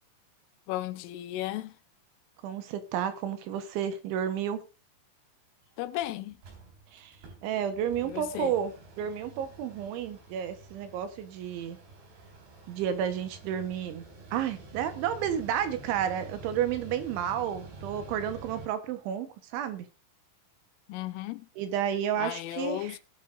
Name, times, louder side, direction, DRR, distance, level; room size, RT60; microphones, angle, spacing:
voice 1, 0.7-1.7 5.8-6.4 8.0-8.6 20.9-21.5 22.2-23.0, left 14 dB, 80° left, 3.2 m, -35 dB
voice 2, 2.4-4.6 6.9-7.1 7.4-11.8 12.7-14.0 14.3-19.9 21.6-23.0, right 9 dB, 75° right, 3.3 m, -31 dB
Mechanical fan, 5.6-5.7 6.0-6.1 6.3-18.7, right 2 dB, 55° right, 5.5 m, -48 dB
19.5 x 9.3 x 2.5 m
omnidirectional pair, 5.9 m